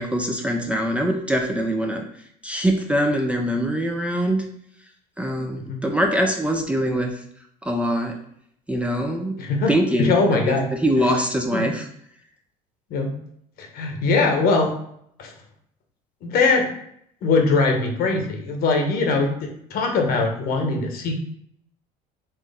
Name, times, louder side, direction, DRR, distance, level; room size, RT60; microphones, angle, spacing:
voice 1, 0.0-2.1 2.4-4.5 5.2-7.2 7.6-8.1 8.7-9.4 9.7-11.9, equal, 5° right, 2 dB, 0.5 m, -23 dB
voice 2, 9.4-9.7 10.0-10.7 11.5-11.7 12.9-13.1 13.6-14.7 15.2-15.3 16.2-16.7 17.2-21.1, left 3 dB, 60° left, 3 dB, 1.1 m, -21 dB
4.3 x 3.1 x 3.5 m, 0.69 s
supercardioid pair, 95°, 18 cm